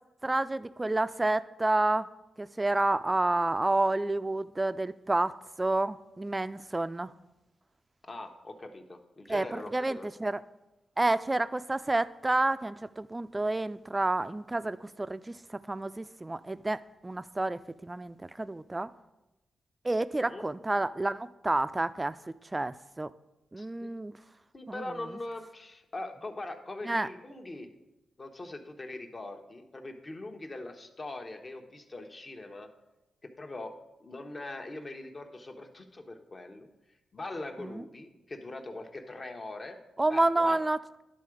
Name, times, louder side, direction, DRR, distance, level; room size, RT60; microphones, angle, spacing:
voice 1, 0.2-2.1 2.4-7.1 9.3-10.4 11.0-18.9 19.8-22.2 22.5-23.1 23.5-24.1 24.7-24.8 26.8-27.1 37.6-37.8 40.0-40.8, right 2 dB, 25° right, 14 dB, 0.4 m, -29 dB
voice 2, 8.0-10.1 20.2-20.5 23.6-23.9 24.5-27.7 28.2-32.7 33.2-33.7 34.0-36.7 37.1-39.8 40.1-40.6, left 2 dB, 40° left, 5 dB, 1.0 m, -42 dB
11.0 x 3.8 x 4.9 m, 0.98 s
supercardioid pair, 50°, 0 cm